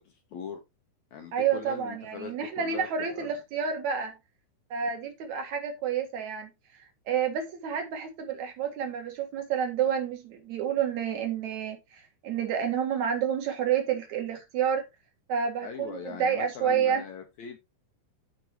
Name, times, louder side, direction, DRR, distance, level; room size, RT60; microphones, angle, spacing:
voice 1, 0.3-0.6 1.1-2.9 3.2-3.3 15.6-17.6, left 6 dB, 65° left, 2.0 m, -41 dB
voice 2, 1.3-4.2 4.7-6.5 7.1-14.9 15.3-17.0, right 8 dB, 55° right, 2.8 m, -29 dB
13.0 x 5.3 x 3.0 m
omnidirectional pair, 4.3 m